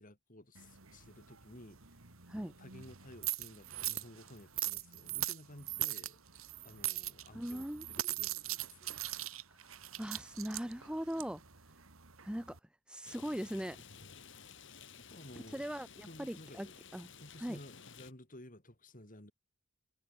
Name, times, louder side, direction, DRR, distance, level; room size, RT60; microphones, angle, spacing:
voice 1, 0.0-2.1 2.4-6.2 6.6-9.0 14.9-15.6 16.0-16.8 17.1-19.3, left 1 dB, 40° left, 4.7 m, -55 dB
sound 1, 0.5-12.6, right 14 dB, 85° right, 2.8 m, -41 dB
voice 2, 7.3-8.1 9.6-9.7 10.0-11.4 12.2-12.6 12.9-13.8 15.5-16.7 16.9-17.1 17.4-17.6, equal, 5° right, 0.8 m, -40 dB
Rain, 13.0-18.1, left 6 dB, 60° left, 3.6 m, -54 dB
head